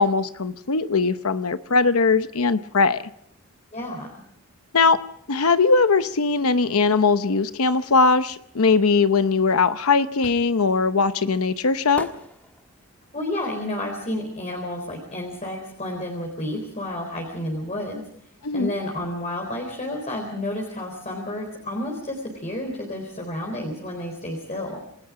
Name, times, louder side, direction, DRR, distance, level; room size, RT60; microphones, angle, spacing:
voice 1, 0.0-3.0 4.7-5.0 5.3-12.1 18.4-18.7, left 4 dB, 75° left, 11 dB, 0.8 m, -20 dB
voice 2, 3.7-4.2 13.1-18.1 18.5-24.8, left 1 dB, 30° left, 0 dB, 4.1 m, -31 dB
sound 1, 10.2-15.2 15.5-17.1 17.3-17.4, left 1 dB, 10° left, 1.5 m, -43 dB
28.5 x 19.5 x 4.9 m, 0.69 s
head